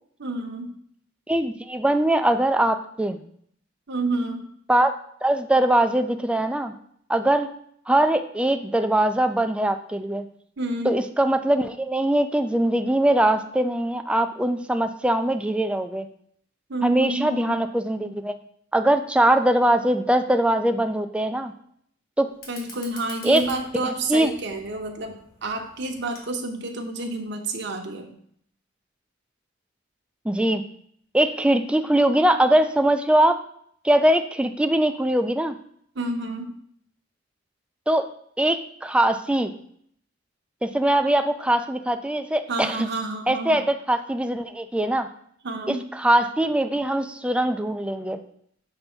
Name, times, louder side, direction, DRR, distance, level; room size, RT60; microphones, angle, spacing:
voice 1, 0.2-0.7 3.9-4.5 10.6-11.0 16.7-17.6 22.5-28.1 35.9-36.5 42.5-43.6 45.4-45.8, right 2 dB, 60° right, 3 dB, 1.0 m, -29 dB
voice 2, 1.3-3.2 4.7-4.9 5.2-6.7 7.1-7.5 7.9-10.3 10.8-16.1 16.8-18.4 18.7-21.5 22.2-22.3 23.2-23.4 23.8-24.3 30.2-30.6 31.1-33.4 33.8-35.6 37.9-38.1 38.4-39.5 40.6-42.9 43.3-45.1 45.7-48.2, right 1 dB, 5° right, 8 dB, 0.4 m, -22 dB
Fire, 22.3-27.3, left 2 dB, 50° left, 1.7 m, -47 dB
6.8 x 3.5 x 5.6 m, 0.65 s
head